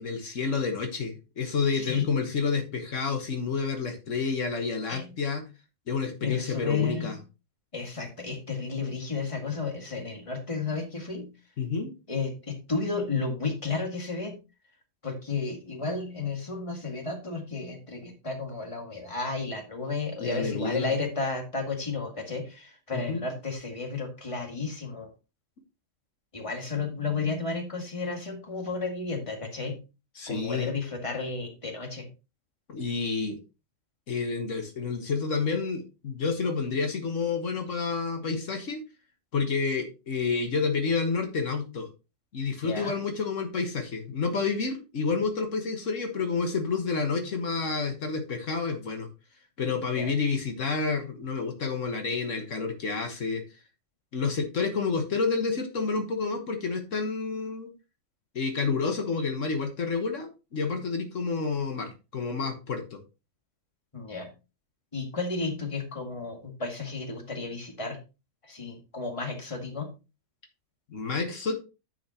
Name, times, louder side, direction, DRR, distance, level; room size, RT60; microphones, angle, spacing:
voice 1, 0.0-5.4 5.9-7.2 11.6-11.9 20.2-20.9 22.9-23.2 30.2-30.7 32.7-33.4 34.1-38.8 39.3-41.9 42.3-49.1 49.6-53.4 54.1-57.7 58.3-63.0 70.9-71.6, left 4 dB, 75° left, 4 dB, 1.6 m, -29 dB
voice 2, 1.7-2.1 4.9-5.1 6.2-7.2 7.7-11.3 12.1-14.4 15.0-25.1 26.3-29.8 30.3-32.1 42.6-43.0 49.9-50.1 63.9-64.3 64.9-68.0 68.4-69.9, left 4 dB, 25° left, 3 dB, 2.0 m, -32 dB
9.8 x 7.1 x 2.9 m, 0.29 s
omnidirectional pair, 1.3 m